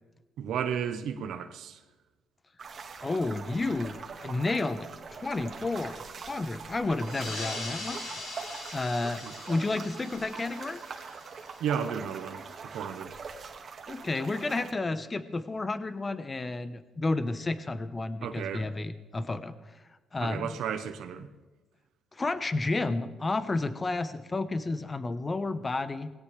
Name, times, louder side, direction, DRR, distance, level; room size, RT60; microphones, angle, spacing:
voice 1, 0.4-1.8 9.2-9.3 11.6-12.4 12.7-13.1 18.2-18.7 20.2-21.3, right 8 dB, 80° right, 7 dB, 1.1 m, -33 dB
sound 1, 2.6-14.7, right 5 dB, 50° right, 2.1 m, -43 dB
voice 2, 3.0-8.0 8.7-10.8 13.9-19.6 20.1-20.6 22.2-26.1, left 3 dB, 25° left, 12 dB, 1.1 m, -31 dB
sound 2, 7.0-12.1, left 2 dB, 90° left, 6.9 m, -42 dB
19.5 x 17.0 x 3.4 m, 1.2 s
cardioid pair, 90°, 0 cm